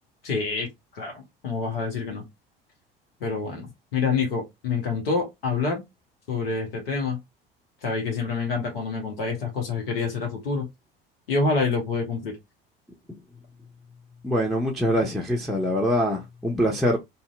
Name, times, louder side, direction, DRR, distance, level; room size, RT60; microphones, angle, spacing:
voice 1, 0.2-2.2 3.2-5.8 6.3-7.2 7.8-10.7 11.3-12.3, left 4 dB, 75° left, 0.9 m, -27 dB
voice 2, 14.2-17.0, equal, ahead, 0.5 m, -24 dB
2.6 x 2.1 x 2.4 m
figure-of-eight pair, 65°, 29 cm